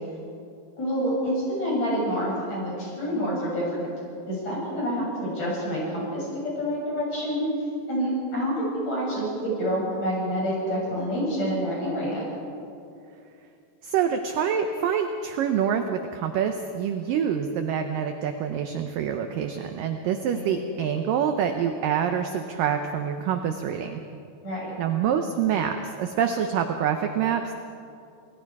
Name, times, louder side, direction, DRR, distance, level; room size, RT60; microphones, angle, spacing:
voice 1, 0.8-3.9 4.3-7.5 7.9-12.2 20.3-20.5 24.4-24.7, equal, 40° left, -5 dB, 8.3 m, -27 dB
voice 2, 13.8-24.0 24.8-27.5, right 8 dB, 80° right, 6 dB, 1.9 m, -26 dB
28.5 x 19.5 x 4.8 m, 2.5 s
omnidirectional pair, 5.0 m